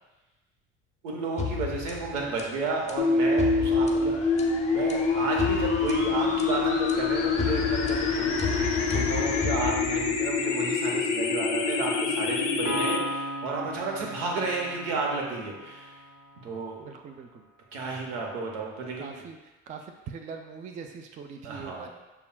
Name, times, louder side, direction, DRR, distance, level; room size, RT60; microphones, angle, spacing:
voice 1, 1.0-4.4 4.7-16.0 16.4-16.9 17.7-19.3 21.4-21.9, right 3 dB, 75° right, 0 dB, 1.0 m, -32 dB
sound 1, 1.4-10.3, left 5 dB, 20° left, 0.6 m, -34 dB
voice 2, 2.2-2.6 16.8-17.4 19.0-19.4 19.7-21.9, right 6 dB, 20° right, 5 dB, 0.3 m, -42 dB
sound 2, 3.0-13.0, left 4 dB, 80° left, 0.6 m, -26 dB
Piano, 12.6-16.2, right 1 dB, 50° right, 0.7 m, -36 dB
6.9 x 2.3 x 2.2 m, 1.1 s
hypercardioid pair, 65°, 36 cm